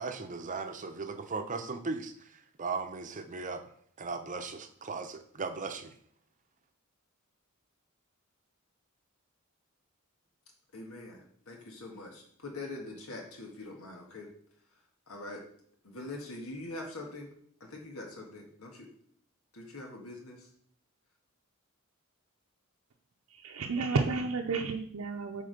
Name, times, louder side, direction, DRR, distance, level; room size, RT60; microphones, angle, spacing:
voice 1, 0.0-3.7 4.0-6.0, right 4 dB, 35° right, 7 dB, 0.7 m, -37 dB
voice 2, 10.7-14.3 15.1-15.4 15.8-17.3 17.6-18.9 19.5-20.5, left 2 dB, 85° left, 1 dB, 1.6 m, -43 dB
voice 3, 23.3-25.4, right 4 dB, 75° right, 2 dB, 0.6 m, -31 dB
7.9 x 3.7 x 5.2 m, 0.63 s
head